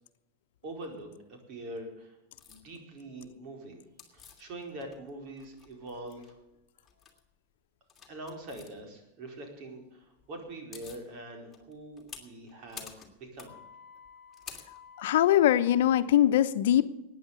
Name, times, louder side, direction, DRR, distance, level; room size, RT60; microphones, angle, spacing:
voice 1, 0.6-2.2 2.5-3.8 4.1-6.4 8.1-13.6, right 1 dB, 45° right, 3 dB, 4.6 m, -44 dB
sound 1, 2.4-2.6 4.0-5.1 5.4-6.3 6.9-7.2 7.9-8.7 10.2-10.3 10.5-11.1 11.5-15.3, left 6 dB, 15° left, 2.7 m, -49 dB
voice 2, 15.0-16.9, left 12 dB, 75° left, 11 dB, 0.9 m, -22 dB
14.0 x 9.6 x 8.3 m, 0.92 s
supercardioid pair, 135°, 0 cm